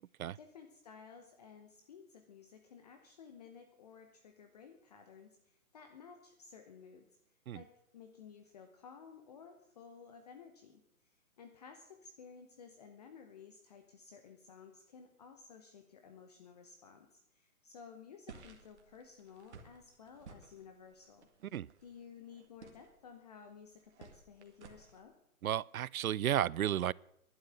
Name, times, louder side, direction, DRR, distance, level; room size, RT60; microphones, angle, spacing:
voice 1, 0.3-21.3 21.8-25.1, left 6 dB, 30° left, 0.9 m, -55 dB
sound 1, 18.3-25.0, right 5 dB, 50° right, 2.1 m, -57 dB
voice 2, 25.4-26.9, right 11 dB, 75° right, 0.5 m, -33 dB
11.5 x 9.5 x 8.9 m
hypercardioid pair, 150°, 43 cm